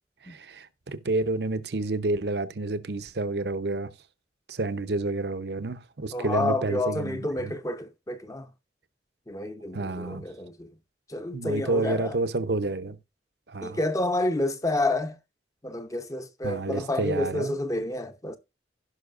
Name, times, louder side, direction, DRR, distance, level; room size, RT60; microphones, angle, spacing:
voice 1, 0.2-3.9 4.5-7.5 9.7-10.2 11.3-13.0 13.5-13.8 16.4-17.5, right 2 dB, 65° right, 0.8 m, -29 dB
voice 2, 6.1-8.5 9.3-10.7 11.1-12.2 13.6-15.2 15.6-18.4, left 2 dB, 20° left, 0.9 m, -29 dB
16.5 x 5.7 x 2.5 m
head